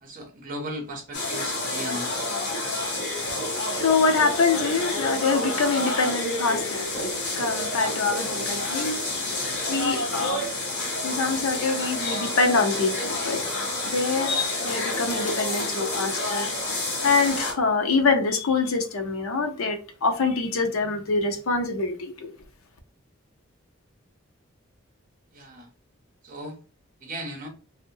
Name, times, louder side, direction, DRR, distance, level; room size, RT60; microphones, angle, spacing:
voice 1, 0.0-2.2 25.3-25.7 26.2-26.6 27.0-27.5, right 1 dB, 40° right, 0.7 m, -36 dB
sound 1, 1.1-17.5, left 2 dB, 50° left, 0.8 m, -29 dB
voice 2, 3.3-10.5 11.0-16.6 17.0-22.3, left 4 dB, 85° left, 0.6 m, -25 dB
2.7 x 2.1 x 2.7 m
head